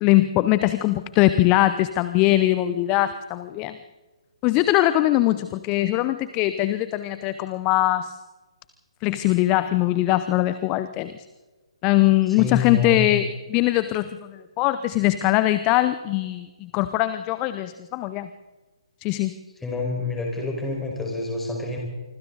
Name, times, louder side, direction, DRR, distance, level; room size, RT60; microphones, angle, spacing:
voice 1, 0.0-3.8 4.4-8.1 9.0-11.1 11.8-18.3 19.0-19.3, left 16 dB, 20° left, 13 dB, 0.7 m, -21 dB
voice 2, 12.4-13.1 19.6-21.8, left 3 dB, 5° left, -1 dB, 5.0 m, -27 dB
25.5 x 25.0 x 4.0 m, 1.2 s
figure-of-eight pair, 140°, 3 cm